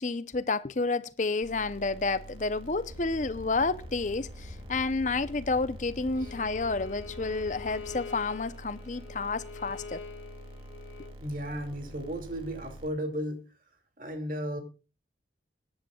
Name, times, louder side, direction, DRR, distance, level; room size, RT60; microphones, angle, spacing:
voice 1, 0.0-10.0, left 3 dB, 40° left, 0.7 m, -30 dB
sound 1, 1.4-12.9, equal, 30° right, 2.5 m, -47 dB
sound 2, 2.9-8.0, left 1 dB, 15° right, 4.4 m, -47 dB
Bowed string instrument, 6.1-11.2, left 5 dB, 90° left, 1.9 m, -44 dB
voice 2, 11.2-13.4 14.0-14.6, equal, 45° right, 2.6 m, -34 dB
23.5 x 10.5 x 2.4 m
head